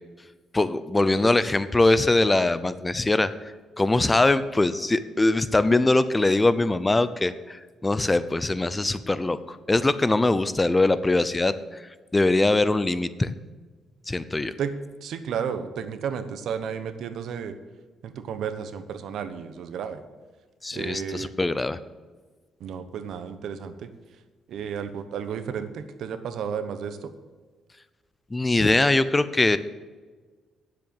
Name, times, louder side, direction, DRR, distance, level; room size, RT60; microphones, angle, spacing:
voice 1, 0.5-11.8 12.1-13.3 14.1-14.5 20.6-21.8 28.3-29.6, left 2 dB, 20° left, 14 dB, 0.6 m, -22 dB
voice 2, 15.0-17.6 18.0-20.0 20.7-21.3 22.6-23.9 24.5-27.1, right 7 dB, 70° right, 10 dB, 1.0 m, -32 dB
9.8 x 7.6 x 7.7 m, 1.4 s
cardioid pair, 90°, 0 cm